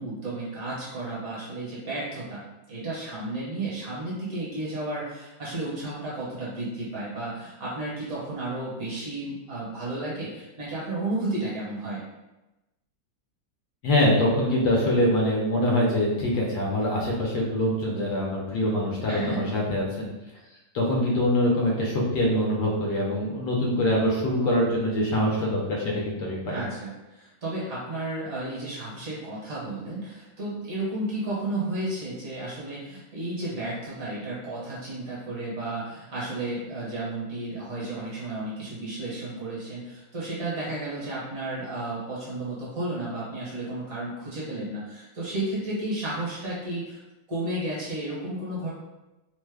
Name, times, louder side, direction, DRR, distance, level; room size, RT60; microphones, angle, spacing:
voice 1, 0.0-12.0 19.1-19.5 26.5-47.0 47.3-48.7, right 2 dB, 55° right, -7 dB, 1.3 m, -33 dB
voice 2, 13.8-20.1 20.7-26.7, left 1 dB, 70° left, -3 dB, 1.2 m, -24 dB
3.2 x 2.1 x 3.3 m, 1.0 s
omnidirectional pair, 2.0 m